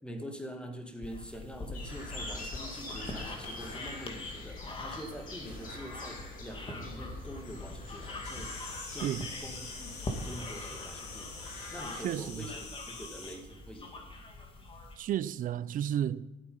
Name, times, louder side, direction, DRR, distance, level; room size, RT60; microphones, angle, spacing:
voice 1, 0.0-8.5 8.9-9.1 9.4-10.0 10.3-11.3 11.7-13.9, equal, 5° left, 2.0 m, -45 dB
sound 1, 1.0-15.0, left 2 dB, 30° left, 2.3 m, -43 dB
sound 2, 1.7-12.0, left 2 dB, 55° left, 5.3 m, -45 dB
Insect, 8.2-13.3, left 4 dB, 75° left, 2.9 m, -46 dB
voice 2, 12.0-12.4 15.0-16.3, right 10 dB, 55° right, 0.6 m, -32 dB
14.0 x 8.7 x 5.5 m
cardioid pair, 110°, 17 cm